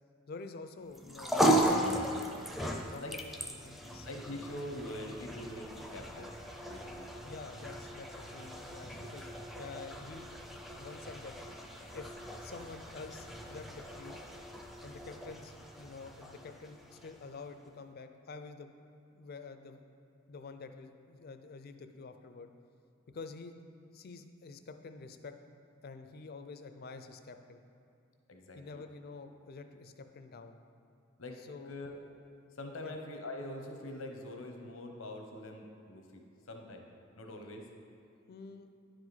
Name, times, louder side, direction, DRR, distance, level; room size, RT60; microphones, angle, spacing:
voice 1, 0.3-2.1 2.9-3.0 3.5-4.1 7.2-10.3 10.8-11.3 11.9-14.2 14.8-18.7 19.1-19.8 20.3-22.5 23.1-23.5 23.9-25.3 25.8-27.6 28.5-30.6 31.5-31.7 32.8-33.0 38.3-38.7, left 4 dB, 50° left, 8 dB, 0.4 m, -48 dB
sound 1, 0.9-17.4, right 1 dB, ahead, 0.5 m, -36 dB
voice 2, 4.0-6.4 6.7-7.1 28.3-28.8 31.2-31.4 31.7-32.0 32.5-36.9 37.2-37.7, left 1 dB, 90° left, 3 dB, 0.9 m, -44 dB
10.0 x 4.9 x 4.1 m, 2.5 s
head